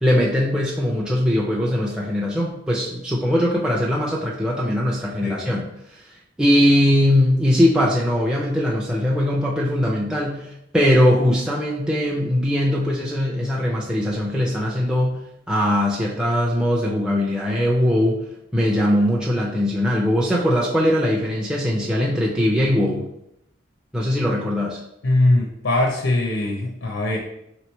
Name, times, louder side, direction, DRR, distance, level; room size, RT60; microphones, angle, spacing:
voice 1, 0.0-15.2 15.5-18.2 18.5-23.1 23.9-24.8, equal, 5° right, -4 dB, 0.4 m, -20 dB
voice 2, 25.0-27.2, left 2 dB, 80° left, 0 dB, 0.6 m, -21 dB
3.3 x 3.0 x 4.4 m, 0.80 s
head